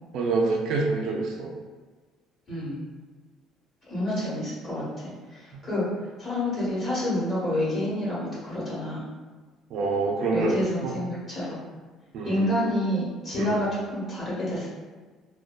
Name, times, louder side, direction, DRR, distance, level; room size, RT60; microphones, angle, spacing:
voice 1, 0.1-1.5 9.7-10.5 10.8-11.0 12.1-12.7 13.4-13.6, right 3 dB, 65° right, 0 dB, 0.4 m, -26 dB
voice 2, 2.5-2.8 3.9-5.8 6.2-9.0 10.3-11.6 12.2-14.7, left 1 dB, 35° left, -8 dB, 1.2 m, -28 dB
2.6 x 2.2 x 2.2 m, 1.4 s
cardioid pair, 130°, 0 cm